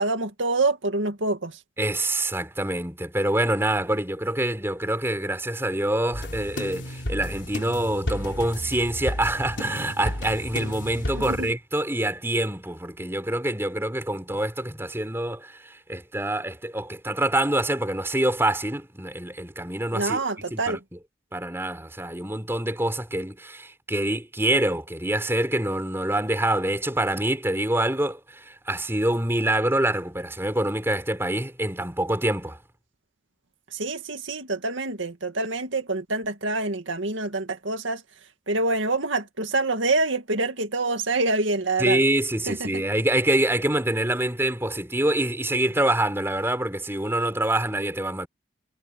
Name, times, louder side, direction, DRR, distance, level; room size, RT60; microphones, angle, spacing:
voice 1, 0.0-1.6 11.1-11.5 19.9-20.8 33.7-38.0 38.5-42.0 42.5-42.8, right 2 dB, 85° right, 2.2 m, -26 dB
voice 2, 1.8-20.2 20.5-20.8 21.3-32.6 41.8-48.3, right 1 dB, 15° right, 4.3 m, -26 dB
sound 1, 6.1-11.5, left 1 dB, 70° left, 3.9 m, -33 dB
head